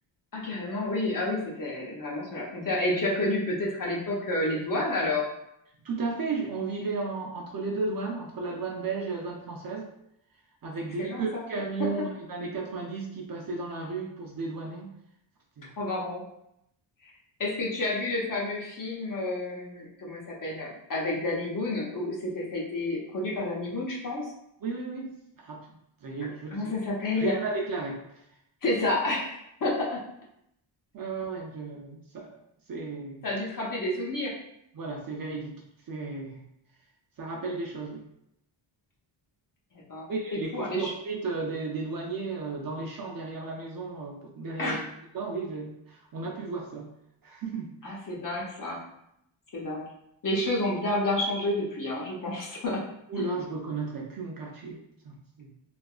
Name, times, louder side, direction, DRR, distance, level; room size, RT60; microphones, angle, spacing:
voice 1, 0.3-5.3 11.0-11.4 11.8-11.9 15.8-16.2 17.0-17.1 17.4-24.2 26.5-27.4 28.6-30.0 33.2-34.3 39.7-40.1 40.5-40.9 44.6-44.8 47.8-48.8 49.5-49.8 50.2-52.8 53.2-53.3, left 2 dB, 40° left, -3 dB, 0.7 m, -30 dB
voice 2, 5.8-9.9 10.6-14.9 15.6-15.7 24.6-25.1 25.4-25.6 26.0-26.7 27.2-28.2 30.9-32.4 32.7-33.2 34.7-35.6 35.9-36.4 37.2-38.0 40.1-44.8 45.1-46.9 47.2-48.1 53.1-55.5, right 3 dB, 45° right, 0 dB, 0.5 m, -34 dB
2.7 x 2.4 x 2.3 m, 0.77 s
wide cardioid pair, 130°, 49 cm